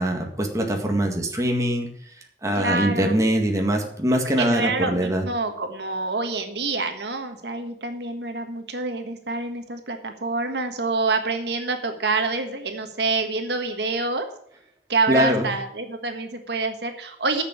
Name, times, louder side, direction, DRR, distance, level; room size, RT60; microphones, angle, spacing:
voice 1, 0.0-1.9 2.4-5.2 15.1-15.5, equal, 20° right, 2 dB, 1.8 m, -22 dB
voice 2, 2.6-3.2 4.4-14.3 14.9-17.4, right 3 dB, 75° right, 6 dB, 1.4 m, -27 dB
10.0 x 6.9 x 8.3 m, 0.67 s
head